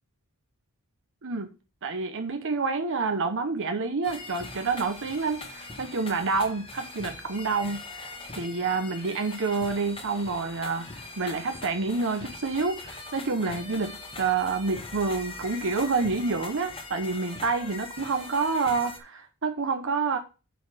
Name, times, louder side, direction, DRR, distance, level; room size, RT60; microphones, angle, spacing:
voice 1, 1.8-20.2, right 4 dB, 60° right, 0.9 m, -28 dB
sound 1, 4.0-19.0, left 3 dB, 25° left, 1.6 m, -42 dB
9.3 x 4.3 x 5.0 m
head